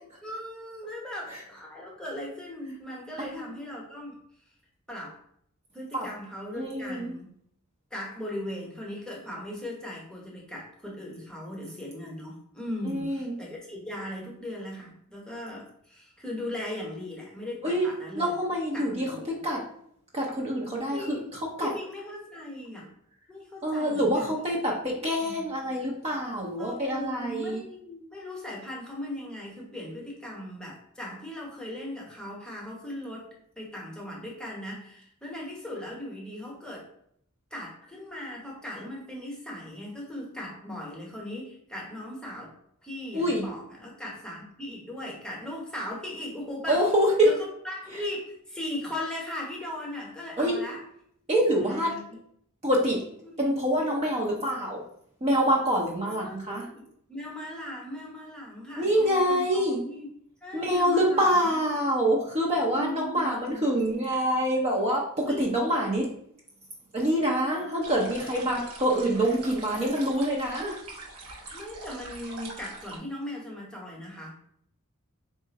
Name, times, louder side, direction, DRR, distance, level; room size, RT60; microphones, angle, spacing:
voice 1, 0.2-4.1 4.9-5.2 5.7-7.3 7.9-18.3 18.7-19.4 20.9-21.3 21.6-22.9 23.3-24.3 24.7-25.5 26.6-33.3 33.6-36.9 37.5-42.5 42.8-46.8 47.2-50.8 51.6-52.0 53.4-53.8 56.2-56.8 57.1-60.1 60.4-61.6 62.7-63.6 65.3-65.4 71.5-74.3, left 1 dB, 5° left, -3 dB, 0.9 m, -38 dB
voice 2, 6.5-7.1 12.8-13.3 17.6-17.9 18.2-19.6 20.1-21.7 23.6-27.6 43.1-43.5 46.7-47.3 50.4-50.6 51.3-51.9 52.6-53.0 53.4-54.8 55.2-56.7 58.8-59.8 60.5-66.1 66.9-70.7, equal, 30° right, -2 dB, 0.6 m, -26 dB
sound 1, 67.8-73.0, right 2 dB, 90° right, 1.0 m, -43 dB
3.7 x 2.5 x 3.9 m, 0.69 s
head